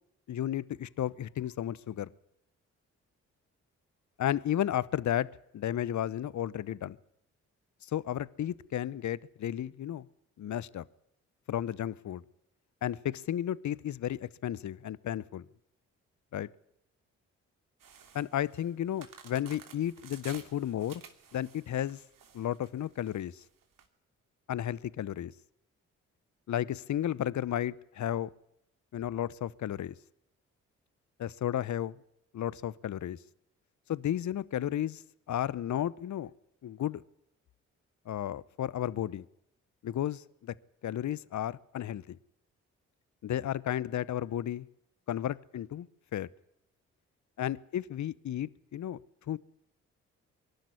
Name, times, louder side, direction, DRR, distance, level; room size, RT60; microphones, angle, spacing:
voice 1, 0.3-2.1 4.2-7.0 7.8-10.1 10.4-10.8 11.5-12.2 12.8-15.5 16.3-16.5 18.1-21.0 21.3-22.0 22.3-23.4 24.5-25.3 26.5-28.3 28.9-29.9 31.2-32.0 32.3-33.2 33.9-35.0 35.3-36.3 36.6-37.0 38.1-39.3 39.8-40.5 40.8-42.2 43.2-44.7 45.1-45.9 46.1-46.3 47.4-49.0 49.3-49.4, left 11 dB, 50° left, 0.8 m, -33 dB
sound 1, 17.8-23.8, right 7 dB, 60° right, 3.1 m, -53 dB
23.5 x 12.0 x 9.7 m
hypercardioid pair, 40°, 36 cm